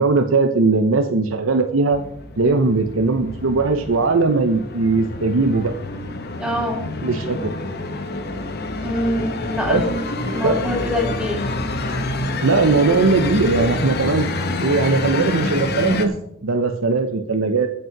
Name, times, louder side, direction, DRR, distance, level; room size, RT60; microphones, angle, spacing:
voice 1, 0.0-2.0 2.4-5.7 7.0-7.5 9.7-9.8 10.4-10.6 12.4-14.3 14.6-16.1 16.4-17.7, right 3 dB, 75° right, 6 dB, 0.8 m, -19 dB
sound 1, 1.9-16.1, left 2 dB, 50° left, 1.3 m, -27 dB
voice 2, 6.4-6.8 8.8-9.9 10.3-11.4, left 1 dB, 5° right, 1 dB, 2.5 m, -24 dB
15.0 x 5.6 x 5.9 m, 0.79 s
head